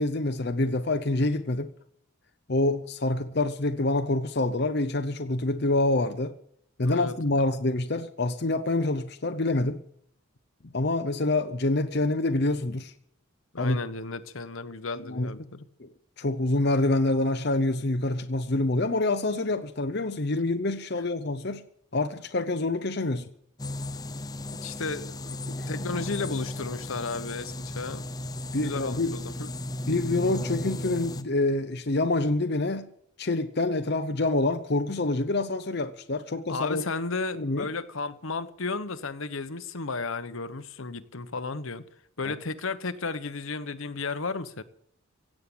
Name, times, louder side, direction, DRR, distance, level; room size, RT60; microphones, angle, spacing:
voice 1, 0.0-1.7 2.5-6.3 6.8-9.8 10.7-12.9 13.6-13.8 15.1-15.3 15.8-15.9 16.2-21.6 21.9-23.3 25.5-25.7 28.5-29.2 29.9-32.9 33.2-36.8 37.3-37.7 42.2-42.3, left 2 dB, 50° left, 0.8 m, -26 dB
voice 2, 6.8-7.1 13.5-15.7 24.6-25.2 25.7-28.0 28.6-29.5 36.5-41.8 42.2-44.6, left 3 dB, 75° left, 1.1 m, -33 dB
sound 1, 23.6-31.2, left 1 dB, 20° left, 0.7 m, -35 dB
17.0 x 7.7 x 8.6 m
head